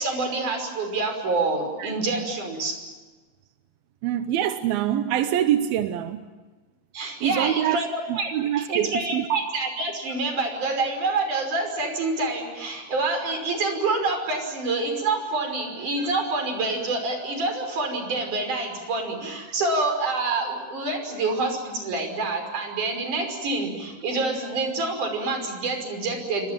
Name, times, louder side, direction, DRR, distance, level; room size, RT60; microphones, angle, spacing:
voice 1, 0.0-2.8 6.9-8.3 8.6-26.5, right 3 dB, 55° right, 7.1 m, -27 dB
voice 2, 4.0-6.3 7.2-7.8 8.1-9.3, right 11 dB, 90° right, 2.8 m, -25 dB
29.0 x 24.5 x 7.5 m
omnidirectional pair, 4.2 m